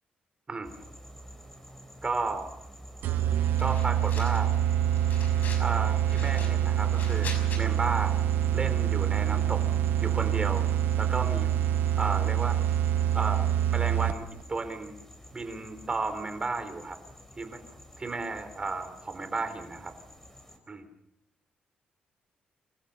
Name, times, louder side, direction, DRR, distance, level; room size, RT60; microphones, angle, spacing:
sound 1, 0.6-20.6, equal, 10° left, 5.0 m, -49 dB
voice 1, 2.0-2.5 3.6-4.5 5.6-7.3 7.6-8.2 8.5-9.6 10.0-10.6 11.0-11.5 12.0-12.6 13.1-14.9 15.3-17.0 17.4-17.6 18.0-19.9 20.7-20.8, right 3 dB, 30° right, 8 dB, 3.9 m, -33 dB
sound 2, 3.0-14.4, right 10 dB, 85° right, 0.8 m, -26 dB
sound 3, 3.5-4.6 4.9-5.7 6.0-7.6, left 4 dB, 60° left, 5.8 m, -42 dB
26.5 x 14.5 x 6.8 m, 0.79 s
cardioid pair, 90°, 3 cm